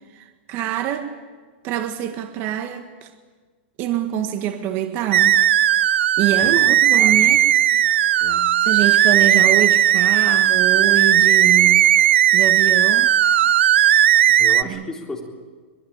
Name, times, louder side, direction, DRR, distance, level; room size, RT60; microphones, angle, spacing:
voice 1, 0.1-1.1 1.6-3.1 3.8-5.4 6.2-7.4 7.7-7.8 8.6-11.9 12.3-13.1 14.6-14.9, right 11 dB, 35° right, 7 dB, 1.7 m, -25 dB
sound 1, 5.1-14.6, right 11 dB, 75° right, 0.8 m, -16 dB
voice 2, 6.4-7.4 8.2-8.5 14.4-15.2, left 3 dB, 10° left, 0 dB, 3.8 m, -35 dB
23.5 x 21.5 x 9.0 m, 1.4 s
hypercardioid pair, 150°, 6 cm